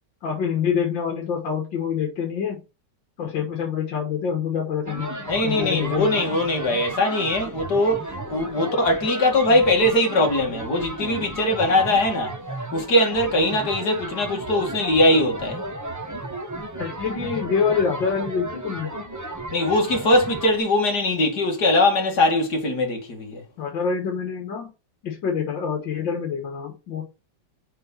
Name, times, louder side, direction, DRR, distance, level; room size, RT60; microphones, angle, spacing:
voice 1, 0.2-2.6 3.2-6.2 8.6-8.7 16.8-18.9 23.6-24.7 25.0-27.0, left 6 dB, 75° left, 2.4 m, -26 dB
sound 1, 4.9-20.6, right 2 dB, 15° right, 0.8 m, -34 dB
voice 2, 5.3-12.3 12.7-15.6 19.5-23.4, left 1 dB, 55° left, 2.6 m, -21 dB
6.6 x 5.2 x 6.0 m
omnidirectional pair, 2.0 m